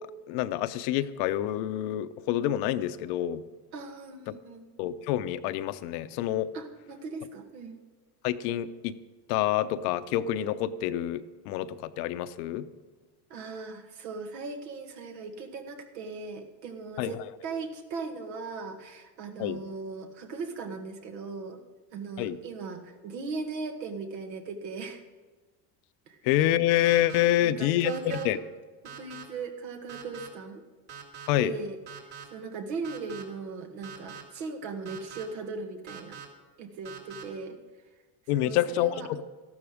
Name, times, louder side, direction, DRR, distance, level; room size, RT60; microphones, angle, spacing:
voice 1, 0.3-3.4 4.8-6.5 8.2-9.0 9.3-12.7 17.0-17.2 19.4-19.6 22.2-22.4 26.2-28.4 31.3-31.5 38.3-39.2, left 13 dB, 70° left, 12 dB, 0.9 m, -27 dB
voice 2, 3.7-4.7 6.5-7.8 13.3-21.6 21.9-25.0 26.1-26.2 27.2-28.3 29.0-30.6 31.3-36.2 36.6-37.6 38.4-39.1, right 4 dB, 85° right, 5 dB, 2.0 m, -38 dB
sound 1, 26.8-27.2 27.9-28.2 28.9-29.2 29.9-30.3 30.9-31.3 31.9-32.2 32.8-33.2 33.8-34.2 34.9-35.2 35.9-36.3 36.9-37.2, right 8 dB, 50° right, 3.0 m, -43 dB
13.5 x 12.0 x 5.0 m, 1.3 s
supercardioid pair, 105°, 49 cm